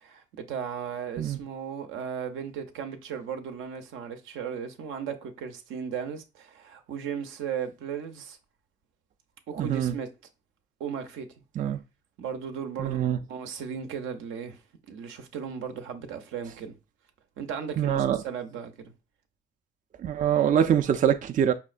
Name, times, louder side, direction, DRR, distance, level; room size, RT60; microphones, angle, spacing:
voice 1, 0.0-8.4 9.5-10.1 10.8-11.3 12.2-13.0 13.3-14.6 14.9-16.7 17.4-18.9, right 7 dB, 85° right, 0.6 m, -36 dB
voice 2, 9.6-9.9 11.6-11.8 12.8-13.2 17.8-18.2 20.0-21.5, right 9 dB, 40° right, 0.4 m, -24 dB
5.5 x 2.1 x 2.4 m
cardioid pair, 90°, 20 cm